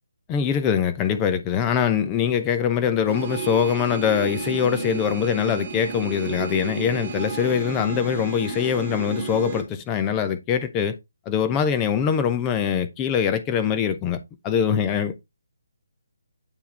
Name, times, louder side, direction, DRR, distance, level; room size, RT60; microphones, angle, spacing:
voice 1, 0.3-11.0 11.3-15.1, left 8 dB, 15° left, 0.7 m, -23 dB
sound 1, 3.1-9.6, right 5 dB, 35° right, 2.2 m, -32 dB
8.8 x 4.7 x 3.3 m
figure-of-eight pair, 145°, 0 cm